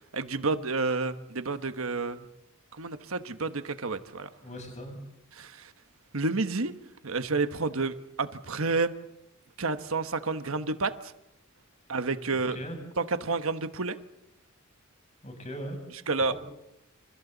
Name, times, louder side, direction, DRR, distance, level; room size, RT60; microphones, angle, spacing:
voice 1, 0.1-2.2 2.7-4.3 5.3-5.7 6.1-6.7 7.0-8.9 9.6-10.9 11.9-12.6 13.0-14.0 16.1-16.3, right 3 dB, 70° right, 10 dB, 1.3 m, -30 dB
voice 2, 4.4-5.0 12.3-12.8 15.2-15.8 16.3-16.4, equal, 35° left, 3 dB, 7.8 m, -39 dB
29.0 x 28.5 x 4.1 m, 0.86 s
head